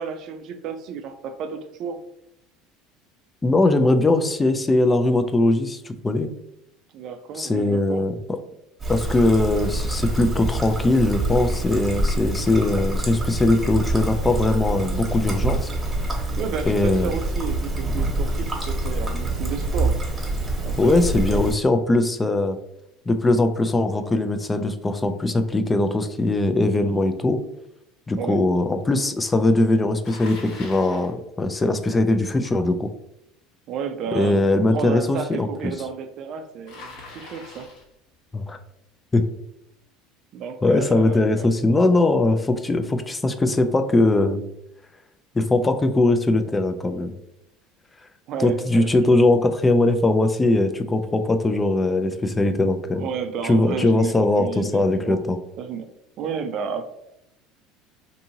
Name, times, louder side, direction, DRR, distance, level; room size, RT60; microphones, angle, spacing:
voice 1, 0.0-2.0 6.9-8.1 16.1-20.0 20.6-21.4 28.2-28.4 33.7-34.4 34.7-37.7 40.3-41.5 48.3-49.1 52.9-55.2 55.6-55.9 56.2-56.8, right 6 dB, 55° right, 8 dB, 0.3 m, -32 dB
voice 2, 3.4-6.3 7.3-8.2 8.9-15.7 16.7-17.1 20.8-22.6 23.1-27.4 28.1-32.9 34.1-35.7 38.3-38.6 39.1-39.3 40.6-44.4 45.3-47.2 48.4-53.1 53.4-55.4, left 2 dB, 20° left, 8 dB, 0.3 m, -20 dB
Trickle dribble, 8.8-21.5, right 2 dB, 20° right, 1.0 m, -26 dB
Bicycle, 30.0-31.1 36.7-37.9, left 3 dB, 70° left, 1.1 m, -42 dB
2.6 x 2.6 x 2.7 m, 0.81 s
hypercardioid pair, 85°, 0 cm